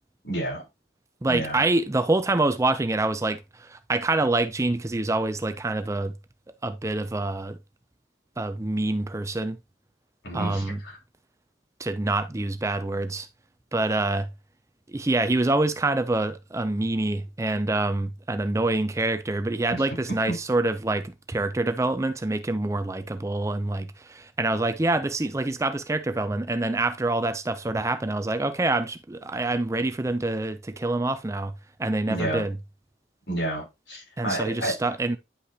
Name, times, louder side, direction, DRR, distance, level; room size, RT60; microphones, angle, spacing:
voice 1, 0.2-0.6 1.3-1.6 10.2-11.0 19.7-19.8 20.3-20.4 32.1-32.4 33.3-34.7, right 1 dB, 65° left, 5.9 m, -30 dB
voice 2, 1.2-6.1 6.6-7.6 8.4-9.6 10.3-10.8 11.8-13.3 13.7-14.3 14.9-31.5 31.8-32.6 34.2-35.2, right 2 dB, 15° right, 0.4 m, -26 dB
9.7 x 5.7 x 2.8 m
head